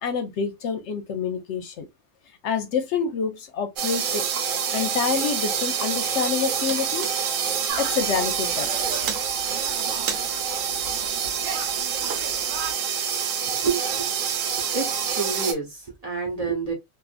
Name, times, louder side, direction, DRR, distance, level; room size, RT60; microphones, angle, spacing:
voice 1, 0.0-1.9 2.4-4.2 4.7-7.1 7.8-9.0, left 6 dB, 70° left, 0.8 m, -27 dB
sound 1, 3.8-15.5, right 7 dB, 90° right, 1.0 m, -26 dB
sound 2, 7.7-12.7, right 5 dB, 60° right, 0.9 m, -38 dB
voice 2, 13.4-14.2 14.6-16.7, right 5 dB, 35° right, 0.9 m, -29 dB
2.5 x 2.5 x 2.4 m
omnidirectional pair, 1.3 m